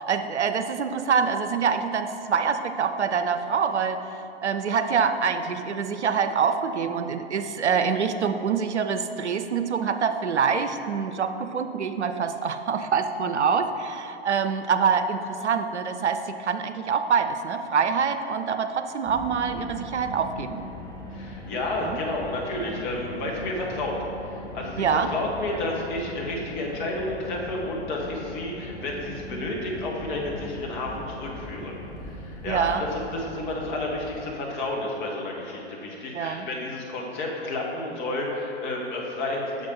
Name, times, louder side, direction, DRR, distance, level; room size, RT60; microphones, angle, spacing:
voice 1, 0.0-4.0 4.4-20.7 21.8-22.0 24.8-25.1 32.4-32.9 36.1-36.5, right 6 dB, 85° right, 9 dB, 0.5 m, -25 dB
Car, 19.1-34.2, left 1 dB, 10° left, 0.7 m, -39 dB
voice 2, 21.1-24.0 24.2-31.7 32.0-39.7, left 2 dB, 45° left, -2 dB, 1.5 m, -31 dB
6.4 x 5.2 x 5.1 m, 2.8 s
figure-of-eight pair, 105°, 33 cm